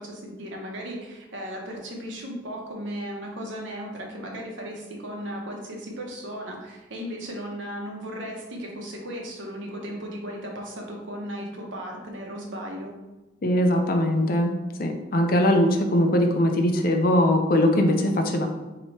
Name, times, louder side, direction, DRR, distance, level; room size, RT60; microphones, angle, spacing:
voice 1, 0.0-12.9, equal, 75° right, 0 dB, 0.9 m, -36 dB
voice 2, 13.4-14.5 14.8-18.5, left 1 dB, 50° left, 4 dB, 0.5 m, -21 dB
2.9 x 2.9 x 4.4 m, 1.1 s
head